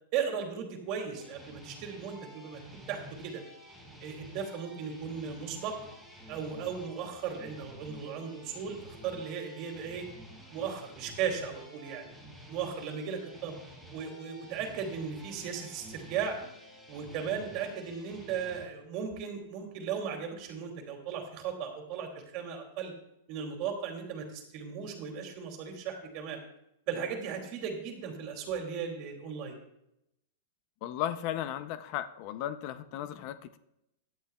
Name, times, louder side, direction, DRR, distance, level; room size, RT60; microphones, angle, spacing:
voice 1, 0.1-2.6 2.9-3.4 4.0-5.8 6.3-10.1 10.5-12.0 12.5-13.6 13.9-16.4 16.9-22.9 23.3-26.4 26.9-29.6, right 7 dB, 40° right, 2 dB, 2.7 m, -36 dB
sound 1, 1.1-18.6, equal, 5° right, 5.0 m, -50 dB
voice 2, 30.8-33.6, left 11 dB, 45° left, 12 dB, 0.6 m, -35 dB
17.0 x 11.5 x 2.3 m, 0.82 s
supercardioid pair, 150°, 0 cm